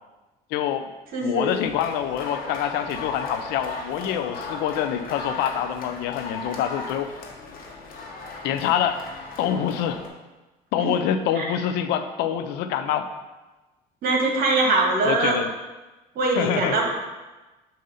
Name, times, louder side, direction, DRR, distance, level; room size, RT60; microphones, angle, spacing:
voice 1, 0.5-0.9 1.2-7.1 8.4-9.0 9.4-10.0 10.7-13.1 15.1-15.5 16.4-16.8, left 9 dB, 80° left, 9 dB, 0.5 m, -26 dB
voice 2, 1.1-1.5 10.8-10.9 11.3-11.5 14.0-15.4 16.1-16.9, right 3 dB, 60° right, 1 dB, 1.5 m, -22 dB
sound 1, 1.5-10.1, left 3 dB, 60° left, 1.2 m, -36 dB
6.4 x 2.8 x 5.5 m, 1.1 s
cardioid pair, 100°, 17 cm